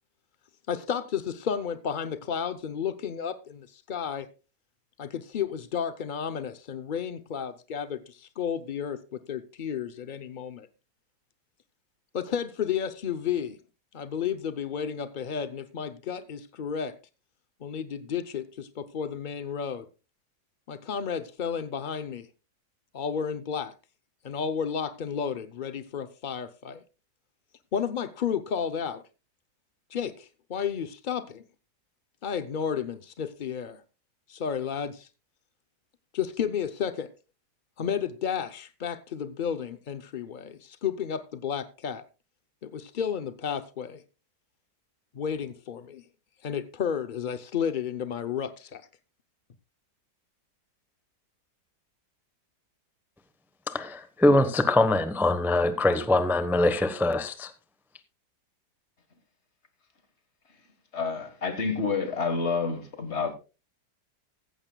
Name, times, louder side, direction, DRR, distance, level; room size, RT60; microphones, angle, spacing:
voice 1, 0.7-4.3 5.0-10.7 12.1-13.6 13.9-16.9 17.6-19.9 20.7-22.3 22.9-23.7 24.2-26.8 27.7-29.0 29.9-31.4 32.2-33.8 34.3-35.1 36.1-37.1 37.8-42.0 42.6-44.0 45.1-46.0 46.4-48.8, left 7 dB, 65° left, 0.4 m, -32 dB
voice 2, 53.7-57.5, left 2 dB, ahead, 0.7 m, -23 dB
voice 3, 60.9-63.3, left 4 dB, 40° left, 1.7 m, -29 dB
15.0 x 15.0 x 2.3 m
omnidirectional pair, 1.8 m